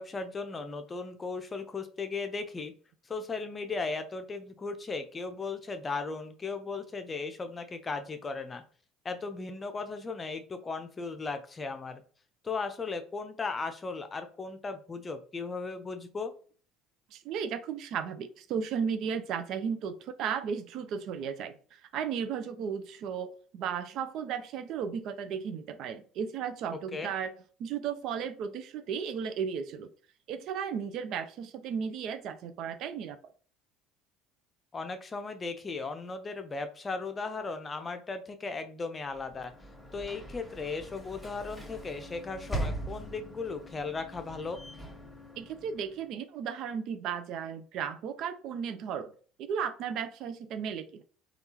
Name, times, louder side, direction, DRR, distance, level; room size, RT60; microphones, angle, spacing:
voice 1, 0.0-2.7 3.1-8.6 9.0-12.0 12.4-16.3 26.9-27.1 34.7-39.5 39.9-44.6, left 4 dB, 30° left, 8 dB, 0.6 m, -36 dB
voice 2, 17.1-27.3 27.6-29.9 30.3-33.2 45.4-49.1 49.4-51.0, right 7 dB, 60° right, 10 dB, 0.4 m, -35 dB
Sliding door / Slam, 39.1-46.1, right 1 dB, 5° left, 1.4 m, -41 dB
3.5 x 2.4 x 2.8 m, 0.42 s
hypercardioid pair, 65°, 0 cm